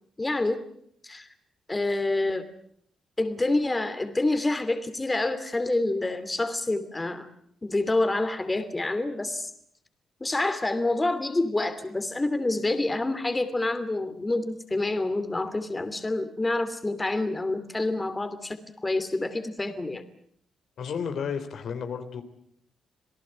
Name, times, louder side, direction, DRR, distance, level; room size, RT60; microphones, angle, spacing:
voice 1, 0.2-0.6 1.0-1.3 1.7-2.4 3.2-7.3 7.6-9.5 10.2-20.0, left 2 dB, 20° left, 11 dB, 2.8 m, -27 dB
voice 2, 20.8-22.2, left 6 dB, 70° left, 8 dB, 3.2 m, -32 dB
27.5 x 18.0 x 8.8 m, 0.68 s
cardioid pair, 90°, 0 cm